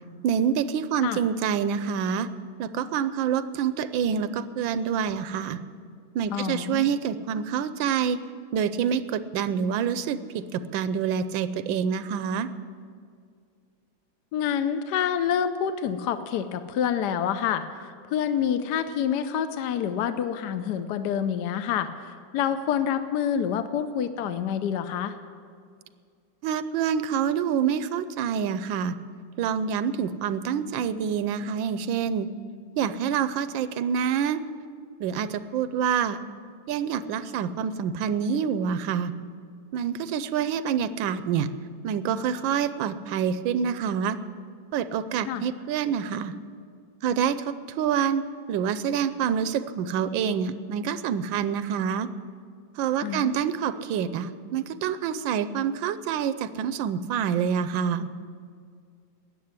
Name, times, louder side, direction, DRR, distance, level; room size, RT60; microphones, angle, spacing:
voice 1, 0.2-2.3 2.6-5.6 6.1-8.2 8.5-12.5 26.4-28.9 29.4-32.3 32.8-34.4 35.0-36.2 36.7-39.1 39.7-41.5 41.8-44.2 44.7-46.3 47.0-48.2 48.5-52.1 52.8-58.1, right 7 dB, 85° right, 13 dB, 1.4 m, -27 dB
voice 2, 6.3-6.9 14.3-25.2 45.3-45.4 53.0-53.4, left 8 dB, 70° left, 10 dB, 1.2 m, -27 dB
13.5 x 9.3 x 9.5 m, 2.2 s
omnidirectional pair, 2.1 m